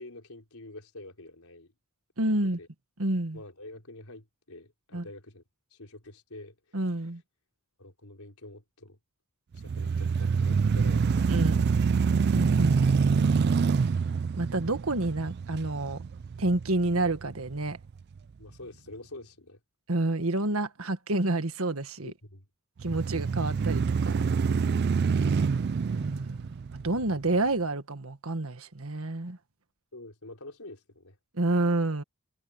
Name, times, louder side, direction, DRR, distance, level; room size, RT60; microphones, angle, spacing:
voice 1, 0.0-1.7 2.4-2.7 3.3-5.4 5.7-6.8 7.8-9.0 9.5-11.1 11.5-11.7 18.4-19.6 22.0-22.4 29.9-31.2, left 2 dB, 85° left, 3.9 m, -47 dB
voice 2, 2.2-2.6 3.0-3.4 4.9-5.1 6.7-7.2 11.3-11.7 12.3-13.3 14.4-16.0 16.4-17.8 19.9-22.1 22.8-24.2 25.9-29.4 31.3-32.0, right 2 dB, 75° right, 1.7 m, -29 dB
sound 1, 9.5-17.7 18.2-18.3 22.8-27.3, right 5 dB, 50° right, 0.3 m, -26 dB
head